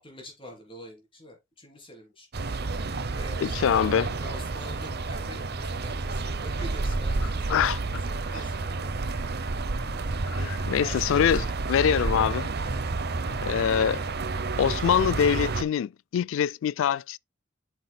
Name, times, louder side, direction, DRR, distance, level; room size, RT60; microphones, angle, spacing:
voice 1, 0.0-2.4 3.1-9.3 10.0-10.1 10.8-11.5 13.3-13.5, left 1 dB, 25° left, 3.4 m, -46 dB
sound 1, 2.3-15.6, right 3 dB, 55° right, 0.7 m, -30 dB
voice 2, 3.4-4.1 7.2-8.0 10.3-12.5 13.4-14.0 14.6-17.2, left 8 dB, 70° left, 0.3 m, -25 dB
8.9 x 6.0 x 2.2 m
head